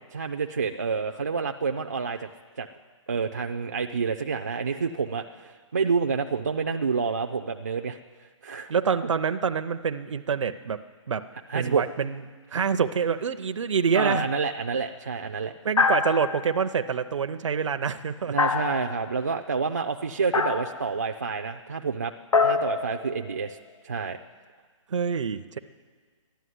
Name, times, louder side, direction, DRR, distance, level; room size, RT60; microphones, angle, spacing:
voice 1, 0.1-2.3 2.6-2.7 3.1-8.7 11.5-11.8 13.9-15.5 18.3-22.1 22.4-23.6 23.8-24.2, right 5 dB, 35° right, 4 dB, 0.4 m, -28 dB
voice 2, 8.7-10.8 11.1-11.2 11.5-12.2 12.5-14.3 15.6-18.3 24.9-25.6, right 6 dB, 70° right, 8 dB, 0.6 m, -26 dB
sound 1, 14.0-14.5 15.8-16.7 18.4-19.1 20.3-20.9 22.3-23.6, left 5 dB, 85° left, 1.2 m, -26 dB
13.0 x 11.5 x 9.4 m, 1.5 s
hypercardioid pair, 180°, 16 cm